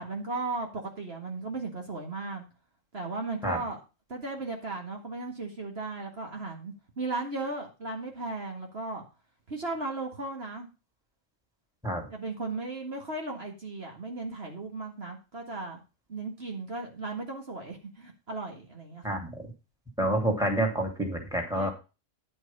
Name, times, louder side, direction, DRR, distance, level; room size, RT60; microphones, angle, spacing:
voice 1, 0.0-2.4 2.9-3.8 4.1-9.1 9.5-10.7 12.1-15.8 16.1-19.2 21.5-21.7, right 3 dB, 50° right, 1 dB, 2.0 m, -36 dB
voice 2, 19.0-19.5 20.0-21.7, right 1 dB, 5° right, 2 dB, 2.6 m, -28 dB
10.5 x 6.2 x 5.4 m, 0.30 s
omnidirectional pair, 1.4 m